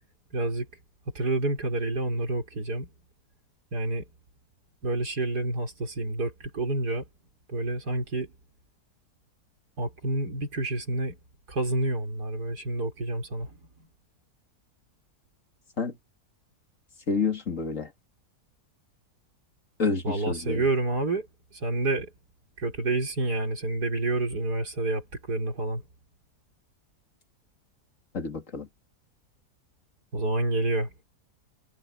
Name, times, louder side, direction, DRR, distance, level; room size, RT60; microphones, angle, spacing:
voice 1, 0.3-0.7 1.1-2.9 3.7-4.0 4.8-7.0 7.5-8.3 9.8-11.1 11.5-13.6 20.0-21.3 21.5-22.1 22.6-25.8 30.1-30.9, right 2 dB, 85° right, 4.9 m, -28 dB
voice 2, 17.1-17.9 19.8-20.6 28.1-28.7, left 4 dB, 50° left, 2.8 m, -28 dB
omnidirectional pair, 1.7 m